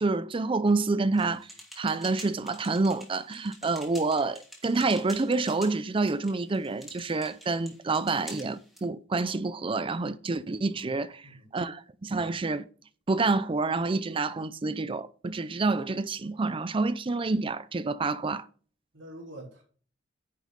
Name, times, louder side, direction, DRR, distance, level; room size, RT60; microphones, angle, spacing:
voice 1, 0.0-1.5 1.8-11.3 11.5-12.6 13.1-18.5, right 3 dB, 30° right, 0.5 m, -28 dB
sound 1, 1.2-8.8, equal, ahead, 2.9 m, -48 dB
voice 2, 11.2-11.5 18.9-19.6, right 1 dB, 90° right, 3.9 m, -46 dB
10.0 x 6.4 x 4.0 m
head